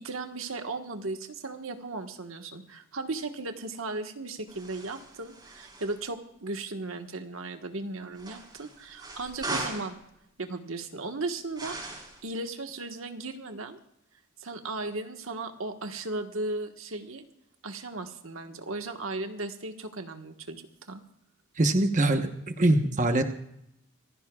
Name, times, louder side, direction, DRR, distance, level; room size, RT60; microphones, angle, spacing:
voice 1, 0.0-10.0 10.4-13.8 14.4-17.2 17.6-21.0, right 2 dB, 90° right, 5 dB, 1.4 m, -36 dB
sound 1, 4.5-6.0 8.2-9.9 11.5-12.2, right 2 dB, 20° right, 4.2 m, -39 dB
voice 2, 21.6-22.3 22.6-23.2, right 2 dB, 35° right, 6 dB, 1.1 m, -22 dB
27.0 x 15.5 x 2.4 m, 0.77 s
head